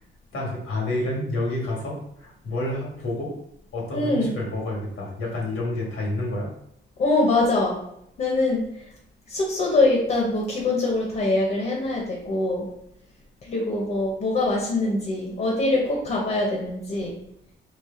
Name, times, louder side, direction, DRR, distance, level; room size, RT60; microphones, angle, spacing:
voice 1, 0.3-3.3 3.7-6.5, left 1 dB, 75° left, -2 dB, 1.6 m, -29 dB
voice 2, 3.9-4.3 7.0-7.8 8.2-8.6 9.3-12.7 13.4-17.1, left 2 dB, 45° left, -2 dB, 1.0 m, -23 dB
3.3 x 3.1 x 4.4 m, 0.75 s
wide cardioid pair, 165°, 21 cm